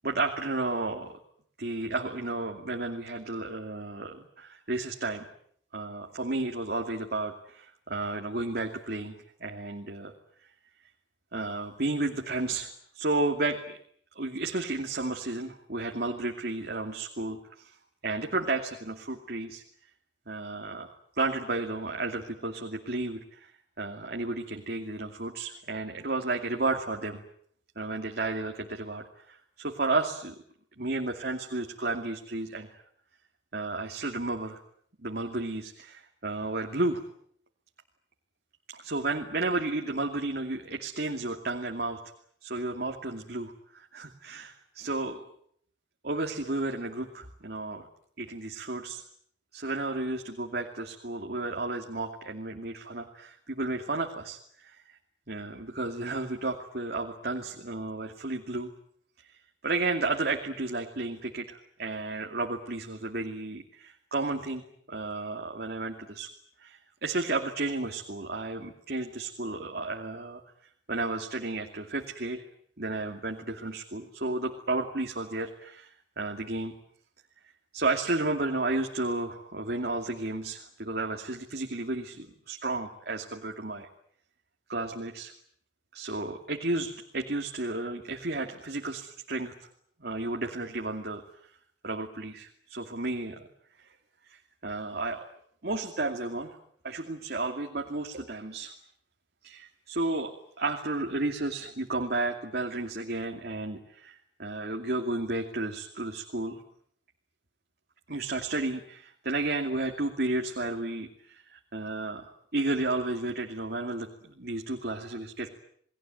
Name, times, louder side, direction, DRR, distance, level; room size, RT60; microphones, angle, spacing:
voice 1, 0.0-1.2 1.6-5.3 5.7-9.2 9.4-10.1 11.3-13.8 14.1-17.8 18.0-19.6 20.3-23.5 23.8-27.2 27.8-30.4 30.8-32.8 33.5-34.6 35.0-37.0 38.7-42.0 42.4-45.2 46.0-47.9 48.2-49.0 49.5-55.0 55.3-58.7 59.6-64.6 64.9-66.3 66.6-70.4 70.9-72.4 72.8-76.8 77.7-83.9 84.7-85.3 85.9-89.5 90.0-91.2 91.8-93.5 94.3-95.3 95.6-96.5 96.8-98.7 99.4-106.6 108.1-115.5, right 2 dB, 55° right, 2 dB, 2.6 m, -32 dB
30.0 x 20.5 x 9.3 m, 0.66 s
head